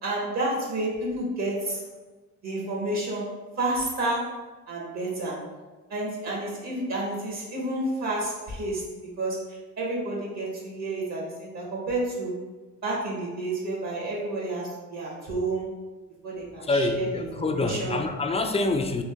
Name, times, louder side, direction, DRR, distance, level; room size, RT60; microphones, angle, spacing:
voice 1, 0.0-1.8 2.4-5.5 5.9-8.9 9.2-12.4 12.8-15.7 16.2-18.0, right 2 dB, 60° right, -4 dB, 1.4 m, -30 dB
voice 2, 16.6-19.0, left 2 dB, 20° left, 5 dB, 0.4 m, -26 dB
3.9 x 2.9 x 3.5 m, 1.3 s
cardioid pair, 90°, 30 cm